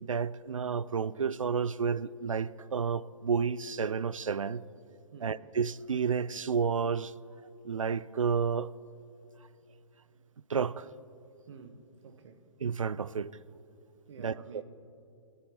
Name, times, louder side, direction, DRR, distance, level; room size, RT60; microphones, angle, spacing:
voice 1, 0.0-4.6 5.2-7.1 7.6-8.7 10.5-10.9 12.6-13.3 14.2-14.6, right 6 dB, 90° right, 0.4 m, -31 dB
voice 2, 11.5-12.4 14.1-14.6, right 5 dB, 65° right, 1.1 m, -50 dB
19.5 x 12.5 x 3.0 m
figure-of-eight pair, 115°, 16 cm